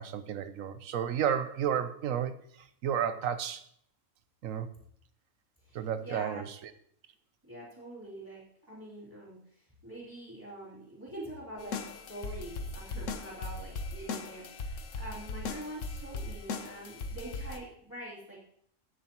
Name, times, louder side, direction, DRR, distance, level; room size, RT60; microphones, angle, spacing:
voice 1, 0.0-3.6 4.4-4.7 5.7-6.7, right 8 dB, 85° right, 11 dB, 1.1 m, -32 dB
voice 2, 5.6-6.4 7.5-18.4, right 1 dB, 15° right, -12 dB, 3.4 m, -45 dB
sound 1, 11.6-17.6, left 3 dB, 70° left, 1.2 m, -38 dB
15.5 x 7.2 x 3.0 m, 0.65 s
omnidirectional pair, 1.3 m